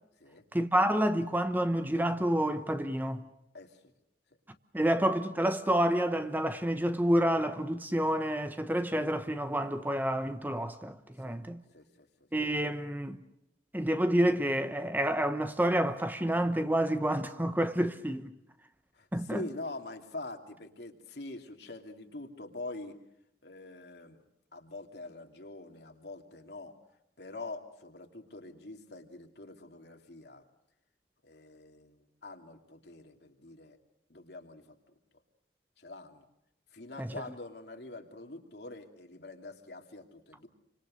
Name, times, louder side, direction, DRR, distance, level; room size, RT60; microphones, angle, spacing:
voice 1, 0.5-3.2 4.7-11.6 12.3-13.2 13.7-18.3 19.1-19.4 37.0-37.1, right 1 dB, 10° right, 1.0 m, -29 dB
voice 2, 3.5-3.9 11.2-11.4 11.7-12.3 18.9-23.0 23.4-24.2 24.5-26.8 27.2-30.4 31.2-33.8 34.1-34.8 35.8-36.3 36.7-40.5, left 2 dB, 65° left, 2.9 m, -45 dB
28.5 x 25.5 x 6.5 m
head